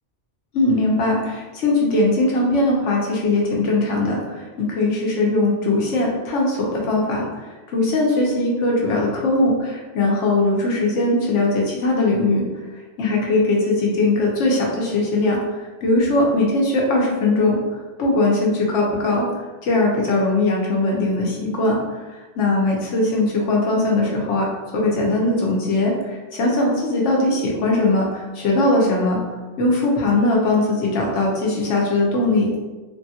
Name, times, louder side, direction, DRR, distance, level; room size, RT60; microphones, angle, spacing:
voice 1, 0.5-12.4 13.0-15.4 15.8-17.6 18.0-19.3 19.6-22.0 22.4-24.5 24.7-29.2 29.6-32.5, left 2 dB, 80° left, -2 dB, 1.1 m, -20 dB
3.5 x 2.3 x 2.7 m, 1.2 s
omnidirectional pair, 1.2 m